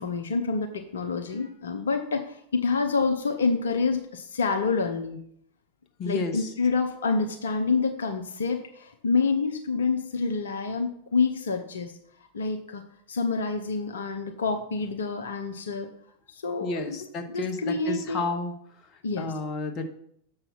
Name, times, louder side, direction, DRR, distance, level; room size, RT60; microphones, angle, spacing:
voice 1, 0.0-5.2 6.1-11.9 12.3-15.9 16.3-17.0 17.3-18.2 19.0-19.3, left 4 dB, 65° left, 5 dB, 0.7 m, -27 dB
voice 2, 6.0-6.5 16.6-18.5 18.8-19.8, left 3 dB, 30° left, 6 dB, 1.2 m, -31 dB
7.1 x 5.5 x 5.7 m, 0.68 s
figure-of-eight pair, 90°, 0 cm